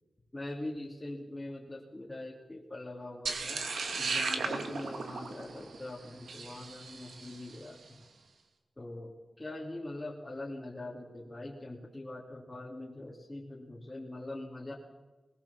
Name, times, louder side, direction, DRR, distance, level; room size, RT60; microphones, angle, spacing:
voice 1, 0.3-3.6 4.0-8.0 8.8-9.1 9.4-14.7, left 1 dB, 15° left, -4 dB, 2.9 m, -42 dB
sound 1, 3.3-7.6, right 4 dB, 90° right, 2.6 m, -36 dB
23.5 x 20.0 x 7.2 m, 1.2 s
wide cardioid pair, 145°, 0 cm